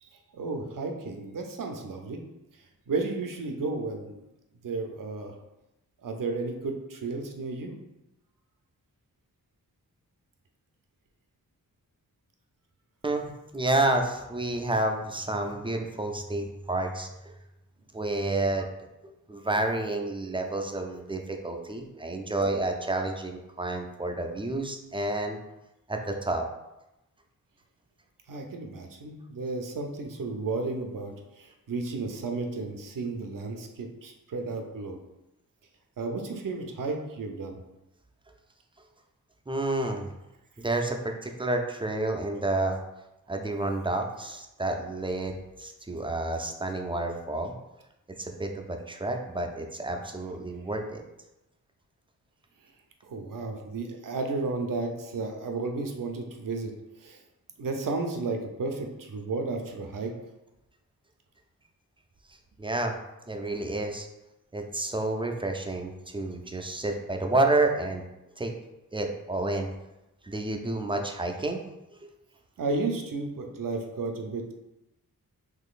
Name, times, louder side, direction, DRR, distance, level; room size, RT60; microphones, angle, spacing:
voice 1, 0.0-2.2 2.9-4.2 4.6-5.3 6.0-7.7 28.3-35.0 36.0-37.6 53.0-56.7 57.0-57.2 57.6-60.1 72.6-74.5, right 3 dB, 60° right, 3 dB, 0.6 m, -33 dB
voice 2, 13.0-17.1 17.9-18.7 19.0-25.4 25.9-26.4 39.5-40.1 40.6-42.8 43.3-47.5 48.2-51.0 62.6-63.0 63.3-64.1 64.5-68.0 68.4-68.5 68.9-69.7 70.2-71.6, right 2 dB, 15° right, 3 dB, 0.4 m, -29 dB
3.8 x 3.0 x 2.4 m, 0.93 s
cardioid pair, 55°, 37 cm